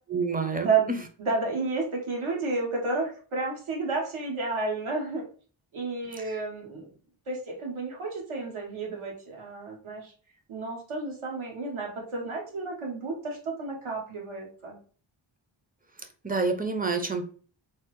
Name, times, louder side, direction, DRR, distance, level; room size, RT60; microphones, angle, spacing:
voice 1, 0.1-1.0 6.3-6.4 16.0-17.2, right 3 dB, 20° right, 5 dB, 0.5 m, -29 dB
voice 2, 1.2-5.2 5.7-6.9 7.3-10.1 10.5-14.8, right 3 dB, 80° right, 0 dB, 1.1 m, -31 dB
3.2 x 2.0 x 3.0 m, 0.41 s
cardioid pair, 60°, 49 cm